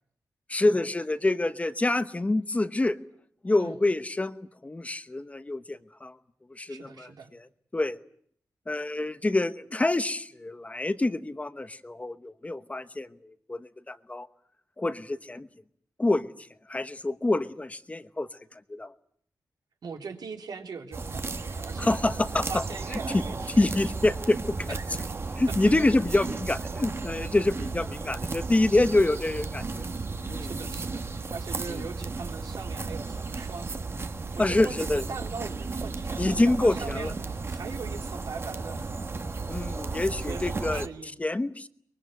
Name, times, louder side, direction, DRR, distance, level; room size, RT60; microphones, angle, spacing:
voice 1, 0.5-3.0 3.4-6.2 6.5-7.4 7.7-8.0 8.7-14.3 14.8-15.5 16.0-18.9 21.8-22.6 22.9-23.2 23.6-24.8 25.4-29.9 30.3-30.5 31.7-31.8 34.4-35.0 36.2-37.1 39.5-40.9 41.2-41.7, left 2 dB, 20° left, 11 dB, 1.0 m, -27 dB
voice 2, 6.7-7.3 19.8-23.6 24.7-25.0 25.5-25.6 28.3-28.5 30.4-38.9 40.0-41.2, right 5 dB, 80° right, 4 dB, 3.7 m, -41 dB
sound 1, 20.9-40.9, right 3 dB, 40° right, 1.5 m, -34 dB
24.0 x 22.5 x 9.3 m, 0.64 s
wide cardioid pair, 135°, 7 cm